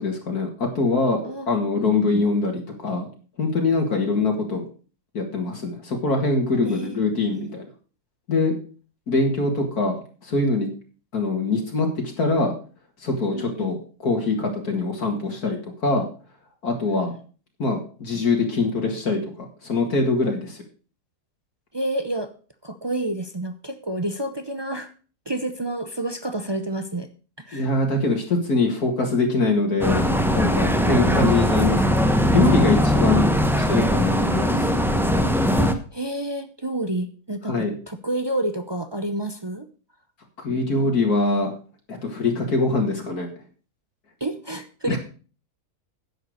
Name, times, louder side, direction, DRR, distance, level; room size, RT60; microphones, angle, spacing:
voice 1, 0.0-3.1 3.4-4.6 5.1-7.7 8.3-8.5 9.1-10.7 11.1-11.9 12.2-12.5 13.0-13.8 14.0-16.1 16.6-17.1 17.6-19.2 19.6-20.6 27.5-30.0 30.3-33.3 33.7-34.7 37.5-37.7 40.4-41.5 41.9-43.3 44.9-45.0, left 3 dB, 65° left, 1 dB, 2.5 m, -23 dB
voice 2, 1.8-2.2 6.6-7.5 13.3-13.8 16.9-17.1 21.7-22.3 22.6-24.9 25.3-27.1 27.4-27.7 30.8-31.4 33.1-33.5 35.6-37.5 37.9-39.7 44.2-45.0, right 1 dB, 35° right, 9 dB, 0.4 m, -29 dB
sound 1, 29.8-35.7, equal, ahead, 0.7 m, -20 dB
10.5 x 7.3 x 6.5 m, 0.39 s
omnidirectional pair, 1.7 m